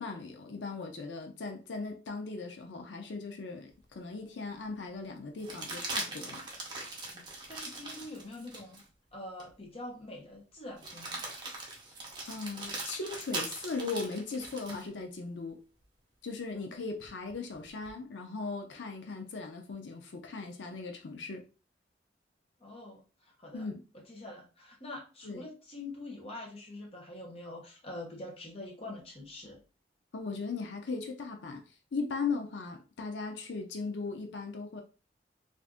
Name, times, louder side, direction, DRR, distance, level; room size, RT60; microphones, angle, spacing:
voice 1, 0.0-6.4 11.9-12.0 12.3-15.6 16.2-21.4 23.5-23.8 25.2-25.4 30.1-31.6 31.9-34.8, left 4 dB, 85° left, 0.5 m, -38 dB
sound 1, 3.8-3.9 5.4-8.9 9.4-9.5 10.8-14.9 17.0-17.9, right 2 dB, 25° right, 0.7 m, -40 dB
voice 2, 7.5-8.8 9.1-11.2 16.5-16.9 22.6-23.7 23.9-29.6, left 2 dB, 35° left, 0.8 m, -45 dB
2.5 x 2.5 x 3.5 m
head